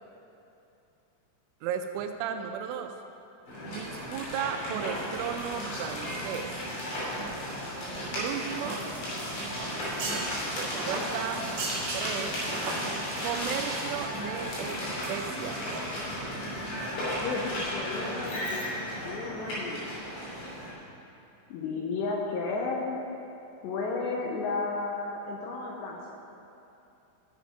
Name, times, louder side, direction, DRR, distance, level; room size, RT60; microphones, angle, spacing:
voice 1, 1.6-2.9 3.7-6.5 8.0-8.8 10.5-11.4 11.9-12.4 13.2-14.8 15.1-15.6, right 8 dB, 85° right, 5 dB, 2.9 m, -35 dB
sound 1, 3.5-20.7, equal, 60° left, 4.9 m, -34 dB
sound 2, 9.6-14.3 14.5-14.7 15.1-15.8 16.2-16.4 16.7-16.9 17.2-17.3, right 2 dB, 55° right, 2.1 m, -37 dB
voice 2, 17.2-20.0 21.5-23.0 23.6-26.2, left 3 dB, 80° left, -1 dB, 2.6 m, -33 dB
14.0 x 6.5 x 5.2 m, 2.8 s
omnidirectional pair, 5.8 m